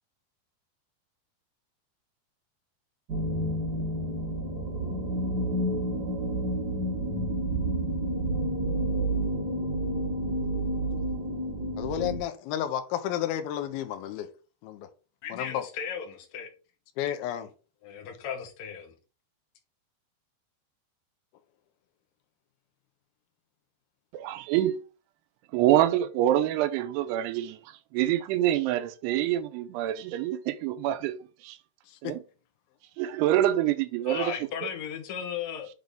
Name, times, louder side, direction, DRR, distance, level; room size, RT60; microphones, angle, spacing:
sound 1, 3.1-12.2, right 1 dB, 70° right, 1.0 m, -29 dB
voice 1, 11.8-14.3 14.6-14.9 15.3-15.6 17.0-17.5 31.9-32.1, left 11 dB, 75° left, 2.6 m, -31 dB
voice 2, 15.2-16.5 17.8-18.9 34.1-35.7, left 8 dB, 60° left, 2.0 m, -36 dB
voice 3, 24.1-24.8 25.5-27.6 27.9-31.2 31.4-31.6 32.0-32.2 33.0-34.7, right 12 dB, 85° right, 2.7 m, -26 dB
8.2 x 3.9 x 3.5 m
omnidirectional pair, 4.7 m